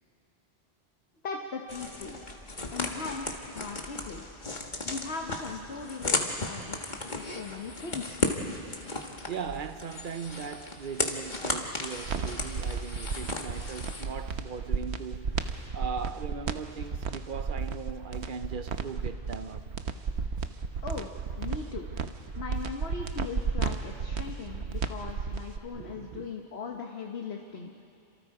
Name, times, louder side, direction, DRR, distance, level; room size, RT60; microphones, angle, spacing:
voice 1, 1.2-2.4 2.7-4.4 4.8-6.8 7.1-8.2 20.8-21.1 21.4-21.9 22.3-27.7, left 4 dB, 70° left, 1.4 m, -39 dB
sound 1, 1.7-14.0, left 2 dB, 45° left, 1.8 m, -35 dB
voice 2, 9.3-19.7 25.8-26.3, right 6 dB, 55° right, 0.8 m, -39 dB
sound 2, 12.0-25.6, right 5 dB, 85° right, 1.2 m, -33 dB
28.5 x 26.5 x 4.8 m
omnidirectional pair, 1.1 m